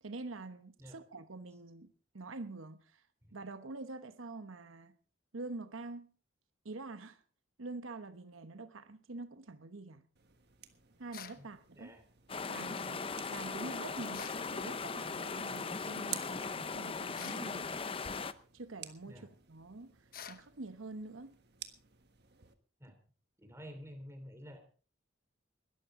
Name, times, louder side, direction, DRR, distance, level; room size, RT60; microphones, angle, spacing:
voice 1, 0.0-3.0 3.3-5.0 5.3-6.1 6.6-7.2 7.6-10.0 11.0-11.9 12.5-17.8 18.5-19.9 20.3-21.4, right 3 dB, 85° right, 1.0 m, -46 dB
sound 1, 10.2-22.6, right 11 dB, 55° right, 1.5 m, -53 dB
sound 2, 11.1-11.4 14.1-14.4 17.1-17.5 20.1-20.4, left 8 dB, 45° left, 1.0 m, -47 dB
sound 3, 12.3-18.3, left 4 dB, 25° left, 0.6 m, -39 dB
voice 2, 23.4-24.6, equal, 15° right, 3.2 m, -49 dB
21.0 x 13.0 x 3.7 m
head